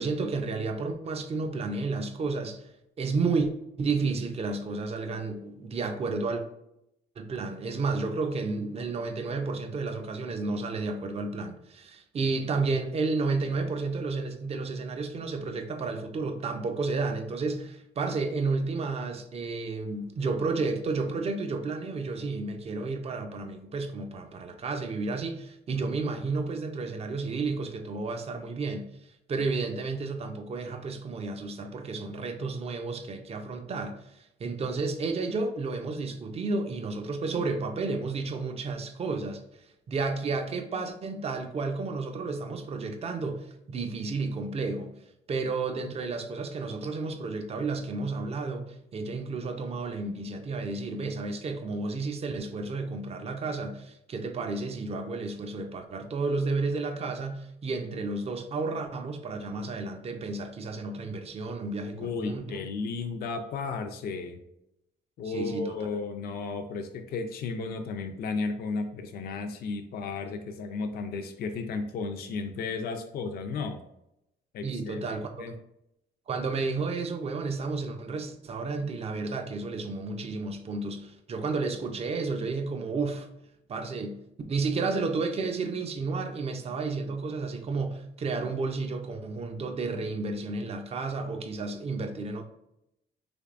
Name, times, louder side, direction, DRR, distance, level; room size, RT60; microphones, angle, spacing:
voice 1, 0.0-2.7 3.0-3.5 3.8-6.4 7.2-28.9 29.3-34.0 34.4-39.4 39.9-44.9 45.3-62.6 65.2-65.8 74.6-75.5 76.3-83.3 83.7-84.2 84.5-92.4, right 3 dB, 35° right, 0.4 m, -32 dB
voice 2, 61.9-64.4 65.2-73.8 74.5-75.5, left 4 dB, 55° left, 0.4 m, -34 dB
3.4 x 3.2 x 2.4 m
cardioid pair, 105°, 19 cm